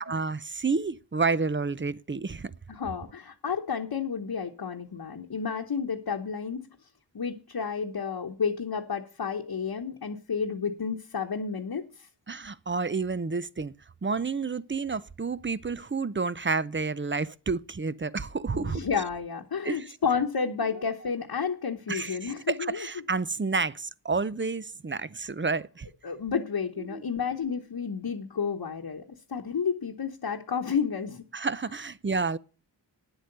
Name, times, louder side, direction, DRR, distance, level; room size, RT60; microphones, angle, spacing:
voice 1, 0.0-2.5 12.3-13.7 14.0-18.8 19.6-19.9 21.9-25.9 26.9-27.0 31.3-32.4, right 4 dB, 25° right, 0.7 m, -30 dB
voice 2, 2.7-6.7 7.1-12.1 18.5-22.9 26.0-29.0 29.3-31.2, left 6 dB, 60° left, 1.2 m, -31 dB
9.7 x 8.0 x 6.7 m
cardioid pair, 45°, 43 cm